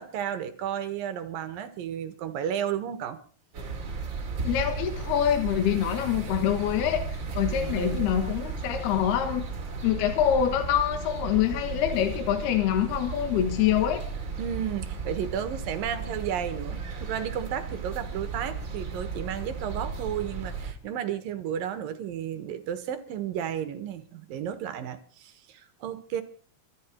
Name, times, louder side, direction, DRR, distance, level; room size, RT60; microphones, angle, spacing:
voice 1, 0.0-3.2 7.5-8.1 14.4-26.2, right 9 dB, 70° right, 10 dB, 2.9 m, -33 dB
sound 1, 3.5-20.7, right 4 dB, 35° right, 2.3 m, -35 dB
voice 2, 4.4-9.4 9.8-14.0, left 10 dB, 75° left, 7 dB, 3.4 m, -25 dB
24.0 x 12.5 x 4.5 m, 0.43 s
omnidirectional pair, 4.7 m